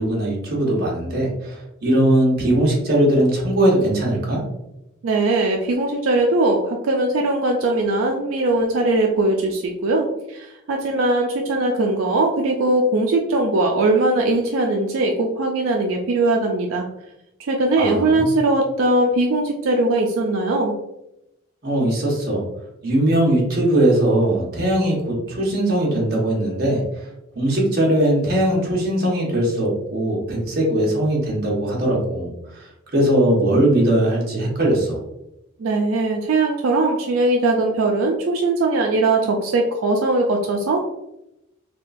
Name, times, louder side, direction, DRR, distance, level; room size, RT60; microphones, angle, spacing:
voice 1, 0.0-4.4 17.8-18.3 21.6-22.4 22.8-27.1 27.3-35.0, right 1 dB, 50° right, -3 dB, 1.0 m, -20 dB
voice 2, 5.0-16.9 17.5-20.7 35.6-40.8, right 2 dB, 80° right, 1 dB, 0.4 m, -20 dB
3.5 x 2.3 x 2.5 m, 0.88 s
head